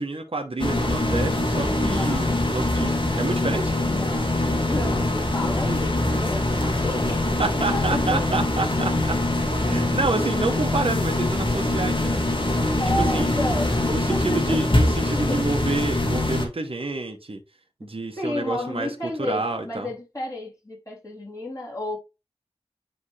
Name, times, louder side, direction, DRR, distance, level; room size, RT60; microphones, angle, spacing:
voice 1, 0.0-3.7 7.4-9.2 9.6-12.2 12.9-13.3 13.9-17.4 17.8-19.9, right 3 dB, 55° right, 1.1 m, -28 dB
sound 1, 0.6-16.5, left 1 dB, 45° left, 2.3 m, -23 dB
voice 2, 1.8-2.3 3.8-4.4 4.7-7.3 7.7-8.3 10.3-10.6 12.8-14.6 15.2-15.5 18.2-22.0, left 1 dB, 30° left, 3.7 m, -31 dB
9.9 x 3.6 x 3.3 m
wide cardioid pair, 50°, 11 cm